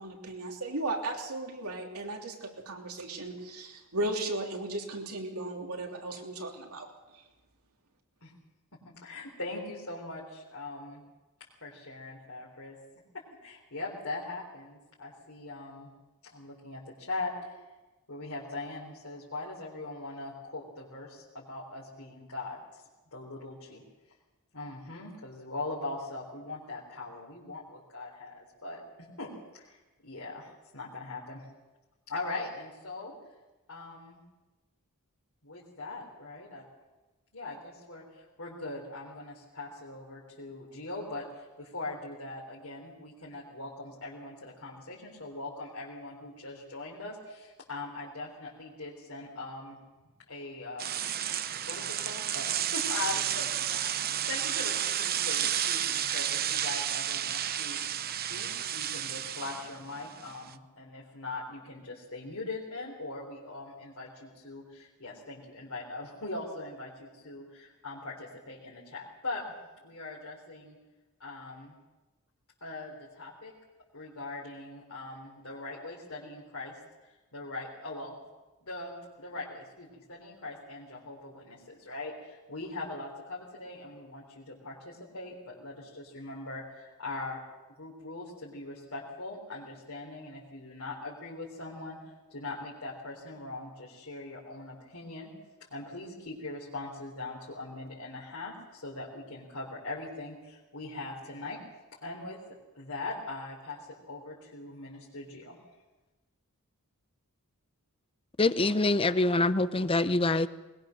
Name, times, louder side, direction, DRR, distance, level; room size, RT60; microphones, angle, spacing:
voice 1, 0.0-6.9, right 2 dB, 85° right, 1 dB, 3.2 m, -36 dB
voice 2, 8.8-11.0 11.6-12.8 13.1-15.9 16.2-17.6 18.1-22.6 23.1-23.8 24.5-28.8 29.2-29.8 30.0-31.5 32.1-33.1 33.7-34.2 35.4-36.6 37.3-49.8 50.3-50.9 51.7-57.9 58.3-69.4 69.8-70.8 71.2-71.7 72.6-73.5 73.9-76.8 77.3-78.2 78.6-87.4 87.8-95.3 95.7-101.6 102.0-102.4 102.7-105.6, left 2 dB, 70° left, -5 dB, 4.0 m, -41 dB
sound 1, 50.8-60.5, right 10 dB, 45° right, 0.7 m, -31 dB
voice 3, 108.4-110.5, left 2 dB, 25° left, 13 dB, 0.7 m, -25 dB
21.0 x 21.0 x 6.6 m, 1.1 s
head